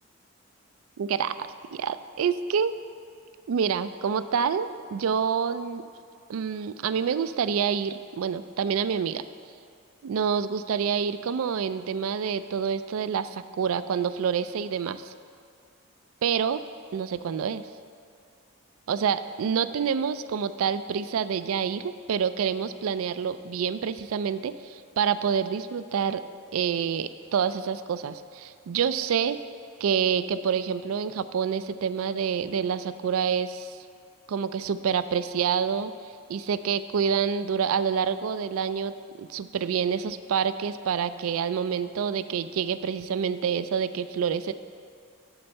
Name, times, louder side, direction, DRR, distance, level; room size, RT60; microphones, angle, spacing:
voice 1, 1.0-1.3 1.7-2.7 3.5-5.8 6.3-9.2 10.0-15.1 16.2-16.6 16.9-17.6 18.9-26.2 26.5-29.4 29.8-33.8 34.3-35.9 36.3-38.9 39.2-44.5, right 7 dB, 75° right, 13 dB, 0.4 m, -27 dB
11.0 x 4.5 x 6.5 m, 2.3 s
head